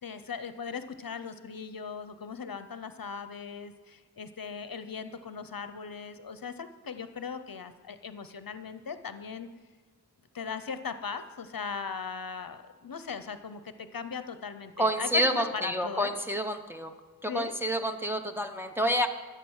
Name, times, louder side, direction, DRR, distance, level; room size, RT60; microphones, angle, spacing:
voice 1, 0.0-9.5 10.3-16.1 17.3-17.5, left 6 dB, 60° left, 11 dB, 0.7 m, -38 dB
voice 2, 14.8-16.9 17.2-19.1, equal, 5° right, 4 dB, 0.8 m, -28 dB
14.0 x 6.8 x 6.4 m, 1.4 s
wide cardioid pair, 75°, 39 cm